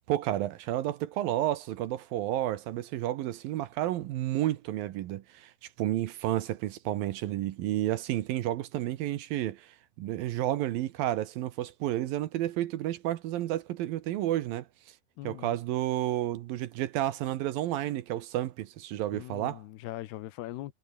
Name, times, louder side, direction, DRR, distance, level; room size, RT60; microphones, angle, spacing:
voice 1, 0.0-15.0 15.2-19.6, right 14 dB, 70° right, 2.4 m, -31 dB
voice 2, 15.2-15.6 19.1-20.7, left 15 dB, 75° left, 3.0 m, -41 dB
omnidirectional pair, 5.0 m